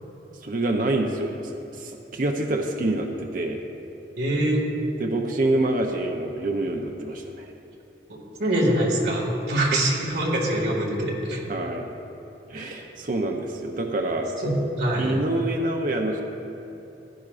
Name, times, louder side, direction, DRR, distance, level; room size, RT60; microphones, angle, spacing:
voice 1, 0.4-1.4 1.8-3.6 5.0-7.5 11.5-11.9 12.5-14.3 15.0-16.2, right 2 dB, 50° right, 2 dB, 0.6 m, -26 dB
voice 2, 4.2-4.6 8.1-11.4 12.5-12.8 14.4-15.1, right 1 dB, 65° right, -3 dB, 1.9 m, -24 dB
15.0 x 10.5 x 2.5 m, 2.9 s
head